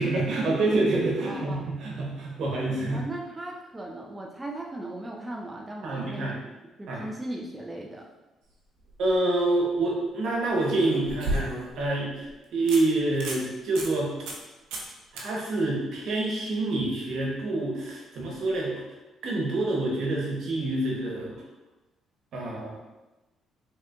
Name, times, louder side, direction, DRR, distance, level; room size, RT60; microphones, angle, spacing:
voice 1, 0.0-3.0 5.8-6.4 6.9-7.0 9.0-11.5 11.8-12.3 12.5-14.1 15.1-18.7 19.2-21.3 22.3-22.8, right 2 dB, 70° right, -2 dB, 1.2 m, -27 dB
voice 2, 1.2-1.7 2.9-6.3 6.8-8.0, right 1 dB, 15° right, -1 dB, 0.5 m, -37 dB
sound 1, 8.8-9.1 10.5-11.8 12.3-12.4 12.7-12.8 13.1-13.4 13.8-13.9 14.3-14.4 14.7-14.9 15.2-15.3 18.4-18.5, right 1 dB, 90° right, 0.7 m, -33 dB
4.1 x 3.6 x 2.4 m, 1.1 s
cardioid pair, 85°, 0 cm